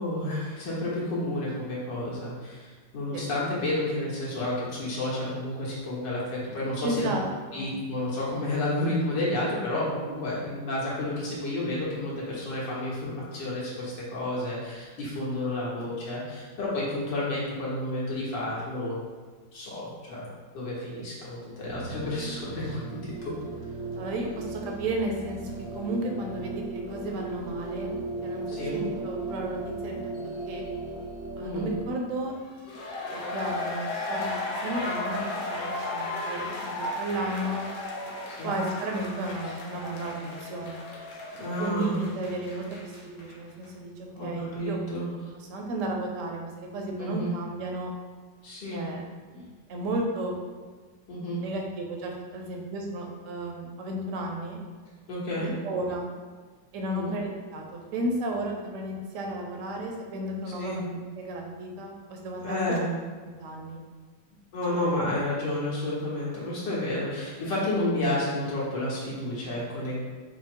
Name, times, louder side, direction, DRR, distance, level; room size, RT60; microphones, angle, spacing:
voice 1, 0.0-7.1 7.5-19.1 19.5-20.3 20.5-23.3 28.5-28.7 31.4-31.7 38.3-38.5 41.4-42.0 44.2-45.1 47.0-47.3 48.4-48.9 51.1-51.5 55.1-55.5 56.8-57.1 60.6-60.8 62.4-62.8 64.5-70.0, left 1 dB, 75° left, -7 dB, 2.0 m, -31 dB
voice 2, 6.8-7.2 7.5-7.7 24.0-27.9 28.2-29.6 29.8-30.0 30.5-30.6 31.4-32.3 33.1-34.4 34.6-37.6 38.4-40.8 41.6-44.8 45.1-47.9 48.7-49.0 49.3-50.4 51.4-54.6 55.3-56.2 56.7-62.6 63.4-63.8 64.7-65.0, right 1 dB, 60° right, 1 dB, 0.9 m, -33 dB
sound 1, 21.6-31.9, right 3 dB, 80° right, 0.6 m, -36 dB
sound 2, 32.5-43.4 43.6-43.7, left 2 dB, 55° left, 0.9 m, -35 dB
5.8 x 2.0 x 4.5 m, 1.5 s
omnidirectional pair, 2.0 m